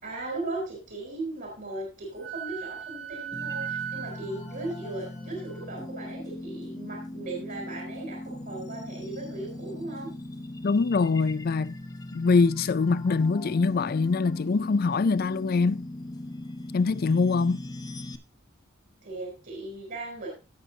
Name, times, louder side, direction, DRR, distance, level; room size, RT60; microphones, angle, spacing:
voice 1, 0.0-10.1 19.0-20.3, right 2 dB, 55° right, 3.4 m, -37 dB
Wind instrument woodwind instrument, 2.2-5.7, right 9 dB, 85° right, 2.6 m, -38 dB
sound 1, 3.3-18.2, left 1 dB, 20° left, 0.9 m, -39 dB
voice 2, 10.6-11.8 12.1-15.9 16.7-17.6, left 4 dB, 50° left, 0.4 m, -24 dB
16.0 x 6.7 x 2.8 m
head